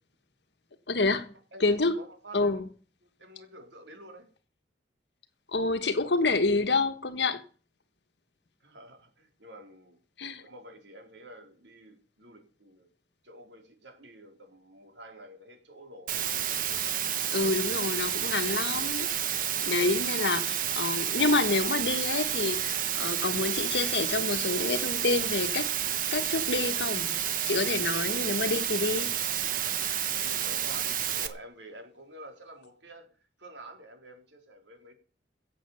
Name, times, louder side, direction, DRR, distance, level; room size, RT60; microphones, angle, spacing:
voice 1, 0.9-1.2 1.6-1.9 2.3-2.6 5.5-7.4 10.2-10.4 17.3-25.7 26.1-27.1 27.4-29.1, left 3 dB, 75° left, 1.5 m, -28 dB
voice 2, 1.5-2.6 3.2-4.3 8.6-10.0 10.3-12.9 13.2-16.5 29.6-33.1 33.4-34.9, right 1 dB, 85° right, 3.6 m, -49 dB
Water, 16.1-31.3, right 10 dB, 50° right, 1.2 m, -30 dB
16.5 x 7.7 x 7.0 m
head